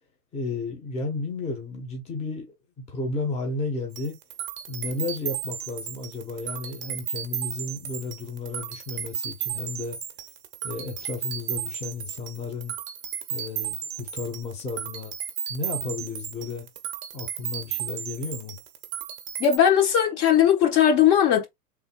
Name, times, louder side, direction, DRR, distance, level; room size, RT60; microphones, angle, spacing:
voice 1, 0.3-2.4 2.9-4.2 4.7-10.0 10.6-12.8 13.3-15.1 15.5-16.7 17.1-18.6, left 3 dB, 15° left, 1.0 m, -33 dB
sound 1, 3.9-19.6, right 9 dB, 25° right, 0.8 m, -34 dB
voice 2, 19.4-21.5, left 9 dB, 35° left, 1.3 m, -19 dB
3.5 x 2.7 x 4.4 m
hypercardioid pair, 125°, 45 cm